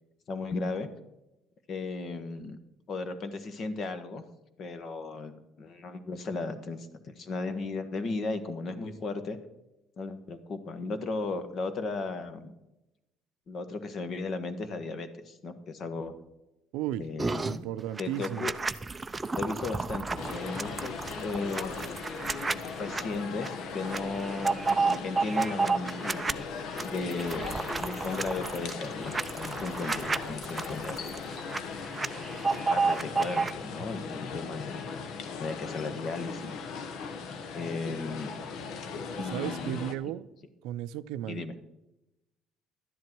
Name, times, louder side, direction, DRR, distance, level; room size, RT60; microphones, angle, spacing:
voice 1, 0.3-0.9 1.7-2.6 2.9-4.2 4.6-5.3 5.6-9.4 10.0-12.5 13.5-16.1 17.0-17.6 18.0-18.5 19.3-21.8 22.8-26.3 26.8-27.5 27.8-31.1 31.8-32.2 32.7-34.8 35.4-36.6 37.5-38.3 39.2-39.8 41.3-41.5, left 3 dB, 40° left, 10 dB, 1.3 m, -35 dB
voice 2, 16.7-17.0 17.4-18.5 39.3-40.3 40.6-41.5, right 12 dB, 90° right, 15 dB, 0.5 m, -34 dB
sound 1, 17.2-17.6 18.0-23.0 23.4-23.5 23.8-26.3 26.7-31.6 31.8-33.5, right 4 dB, 15° right, 0.5 m, -31 dB
sound 2, 20.1-39.9, left 5 dB, 60° left, 1.1 m, -39 dB
12.0 x 10.5 x 4.6 m, 0.93 s
cardioid pair, 140°, 0 cm